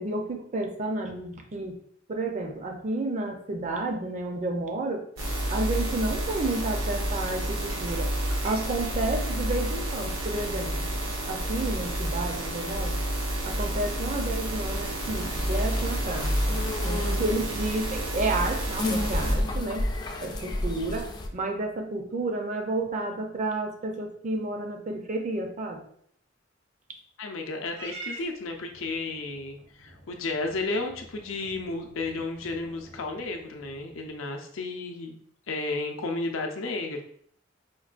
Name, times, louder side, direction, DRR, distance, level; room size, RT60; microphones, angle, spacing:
voice 1, 0.0-1.8 2.1-5.1 5.5-8.1 8.4-10.9 11.3-13.0 13.4-19.9 20.2-25.8, right 2 dB, 40° right, 3 dB, 0.5 m, -31 dB
sound 1, 5.2-19.4, right 1 dB, 85° right, 1.0 m, -29 dB
sound 2, 15.0-21.3, left 1 dB, 20° left, 0.3 m, -32 dB
voice 2, 27.2-35.2 35.5-37.0, left 3 dB, 75° left, 3 dB, 0.5 m, -33 dB
Purr / Meow, 27.7-34.2, right 2 dB, 60° right, 1.0 m, -47 dB
4.5 x 2.2 x 2.4 m, 0.63 s
head